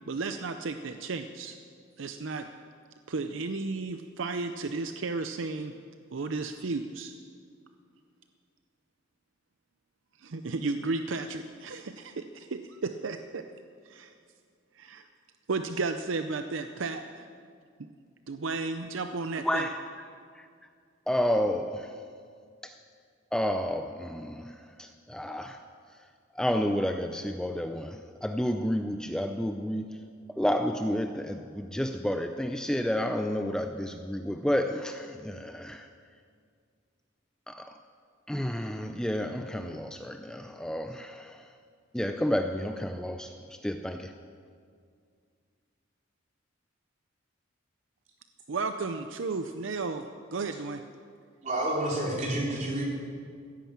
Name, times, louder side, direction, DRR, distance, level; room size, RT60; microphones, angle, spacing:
voice 1, 0.1-1.6 2.0-2.5 3.1-5.7 6.1-7.1 10.2-13.4 13.8-14.1 14.7-15.1 15.5-17.3 18.3-19.7 48.5-50.1 50.3-50.8, right 3 dB, 70° right, 8 dB, 0.6 m, -33 dB
voice 2, 19.4-19.8 20.3-20.5 21.1-22.0 22.6-22.8 23.3-25.6 26.3-30.0 30.3-35.9 37.5-37.8 38.3-41.5 41.9-44.1, equal, 5° left, 6 dB, 0.4 m, -31 dB
voice 3, 51.4-52.8, right 1 dB, 40° right, -4 dB, 4.1 m, -29 dB
16.0 x 10.0 x 7.4 m, 2.2 s
head